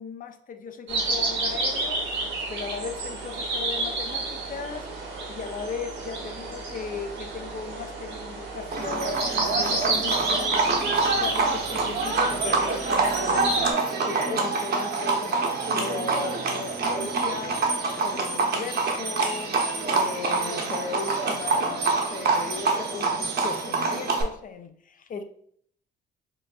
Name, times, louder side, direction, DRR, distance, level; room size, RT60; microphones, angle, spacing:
voice 1, 0.0-2.1 2.5-17.8 18.0-25.2, left 5 dB, 45° left, 8 dB, 0.5 m, -37 dB
sound 1, 0.9-13.7, right 2 dB, 75° right, 1.1 m, -30 dB
Livestock farm animals working animals, 8.7-24.2, right 3 dB, 50° right, 0.8 m, -26 dB
4.5 x 2.6 x 2.3 m, 0.63 s
cardioid pair, 90°, 20 cm